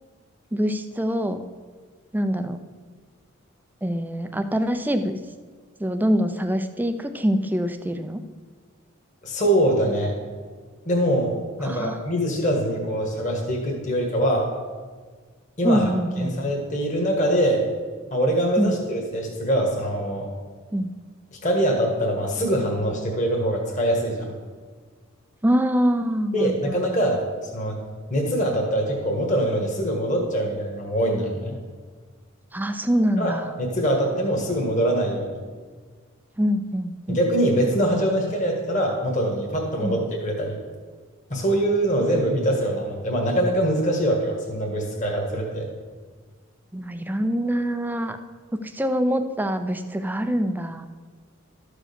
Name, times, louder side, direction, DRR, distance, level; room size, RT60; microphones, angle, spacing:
voice 1, 0.5-1.4 2.1-2.6 3.8-5.2 5.8-8.2 11.6-12.0 15.6-16.3 18.6-18.8 20.7-20.9 25.4-26.8 32.5-33.5 36.4-37.2 39.8-40.0 46.7-48.2 48.6-50.9, equal, 10° right, 9 dB, 0.4 m, -24 dB
voice 2, 9.2-10.1 10.8-11.3 11.6-14.5 15.6-15.9 16.2-17.6 18.1-20.3 21.4-24.3 26.3-27.8 28.1-31.5 33.2-33.3 33.6-35.3 37.1-40.6 41.3-45.7, right 1 dB, 35° left, 0 dB, 1.6 m, -23 dB
12.5 x 5.0 x 6.7 m, 1.5 s
head